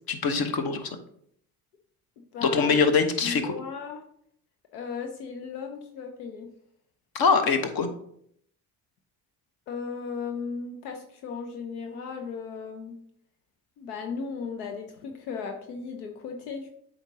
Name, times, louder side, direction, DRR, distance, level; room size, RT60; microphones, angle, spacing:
voice 1, 0.1-0.8 2.4-3.5 7.1-7.9, left 5 dB, 50° left, 7 dB, 1.2 m, -23 dB
voice 2, 2.3-2.7 3.2-4.0 4.7-6.5 9.7-13.0 13.8-16.7, left 5 dB, 85° left, 4 dB, 0.7 m, -36 dB
7.9 x 5.0 x 2.8 m, 0.67 s
hypercardioid pair, 50°, 45 cm